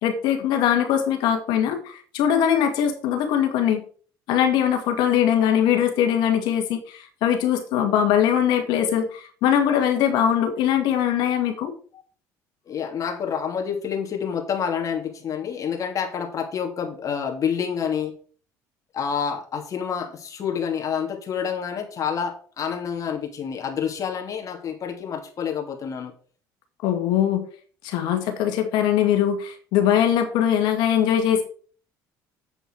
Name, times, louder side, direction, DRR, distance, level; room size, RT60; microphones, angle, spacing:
voice 1, 0.0-3.8 4.3-11.7 26.8-27.4 27.8-31.4, left 9 dB, 75° left, 6 dB, 2.0 m, -21 dB
voice 2, 12.7-18.2 18.9-26.1, left 7 dB, 45° left, 3 dB, 2.8 m, -28 dB
8.0 x 7.8 x 4.7 m, 0.43 s
supercardioid pair, 85°, 8 cm